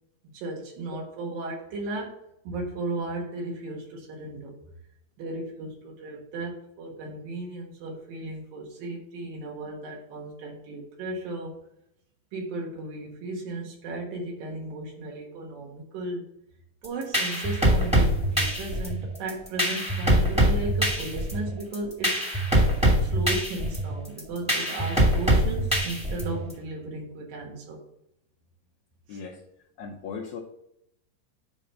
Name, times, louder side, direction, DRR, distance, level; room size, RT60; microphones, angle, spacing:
voice 1, 0.3-2.2 2.4-4.5 5.2-11.5 12.3-16.3 16.8-22.2 23.0-27.8 29.1-29.2, right 2 dB, 90° right, 0 dB, 3.2 m, -35 dB
sound 1, 16.8-26.5, equal, 5° right, 1.5 m, -23 dB
voice 2, 29.8-30.4, left 5 dB, 75° left, -1 dB, 1.8 m, -37 dB
9.6 x 3.5 x 5.4 m, 0.77 s
omnidirectional pair, 3.9 m